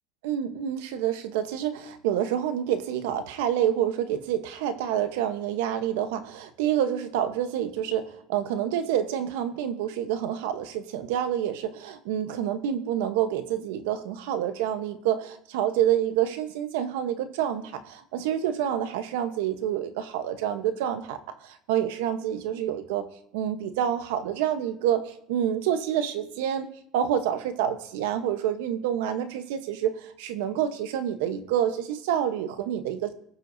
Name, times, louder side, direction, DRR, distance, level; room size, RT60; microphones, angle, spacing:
voice 1, 0.2-23.1 23.3-26.7 26.9-33.1, right 10 dB, 90° right, 10 dB, 0.9 m, -28 dB
19.0 x 7.6 x 2.7 m, 0.72 s
supercardioid pair, 120°, 0 cm